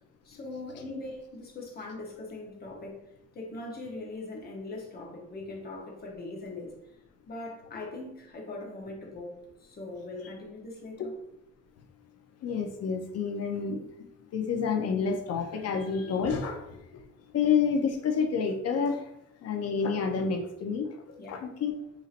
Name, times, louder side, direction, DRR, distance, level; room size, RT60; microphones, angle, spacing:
voice 1, 0.2-3.1 3.3-6.8 7.3-11.1 21.2-21.4, left 2 dB, 30° left, -1 dB, 0.9 m, -41 dB
voice 2, 12.4-13.8 14.3-16.8 17.3-19.1 19.4-20.9 21.3-21.7, left 6 dB, 55° left, 4 dB, 0.6 m, -28 dB
4.1 x 2.7 x 2.5 m, 0.78 s
cardioid pair, 150°, 31 cm